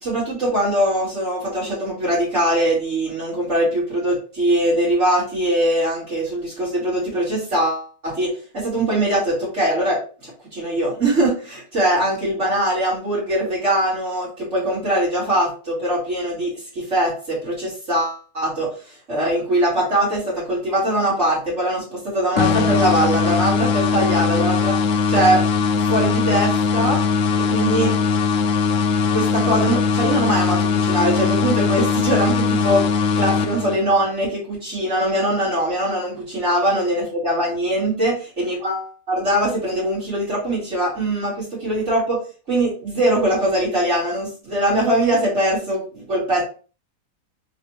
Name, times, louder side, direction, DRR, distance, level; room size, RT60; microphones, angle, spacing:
voice 1, 0.0-18.7 19.1-25.4 25.7-27.0 27.4-28.0 29.1-32.8 33.1-42.2 42.5-46.5, right 1 dB, 45° right, -8 dB, 2.2 m, -22 dB
sound 1, 22.4-34.1, left 5 dB, 75° left, 0.7 m, -20 dB
4.2 x 2.7 x 3.0 m, 0.36 s
omnidirectional pair, 1.8 m